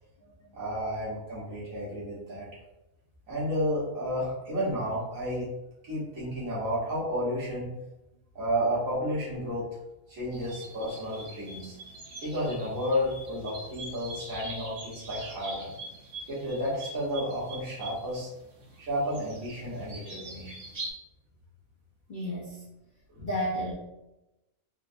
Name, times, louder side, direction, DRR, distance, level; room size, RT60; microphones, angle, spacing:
voice 1, 0.5-2.5 3.3-5.5 5.8-7.7 8.3-9.6 10.1-11.7 12.2-15.7 16.3-18.3 18.8-20.5 23.1-23.3, equal, 70° right, -7 dB, 1.6 m, -31 dB
sound 1, 10.3-20.9, right 2 dB, 50° right, 0.7 m, -44 dB
voice 2, 22.1-22.6 23.2-23.7, equal, 45° left, -7 dB, 0.7 m, -31 dB
3.8 x 2.1 x 2.6 m, 0.93 s
omnidirectional pair, 1.5 m